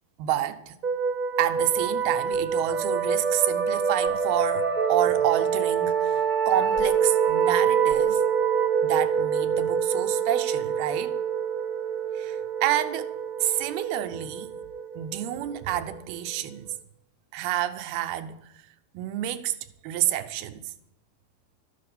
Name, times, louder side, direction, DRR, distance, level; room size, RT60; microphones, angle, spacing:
voice 1, 0.2-0.8 1.4-8.2 8.8-11.2 12.1-13.1 13.4-14.5 15.0-16.7 17.3-18.5 18.9-19.6 19.8-20.7, right 12 dB, 85° right, 2.8 m, -29 dB
sound 1, 0.8-16.2, right 7 dB, 45° right, 1.1 m, -26 dB
12.5 x 10.5 x 6.9 m
omnidirectional pair, 4.3 m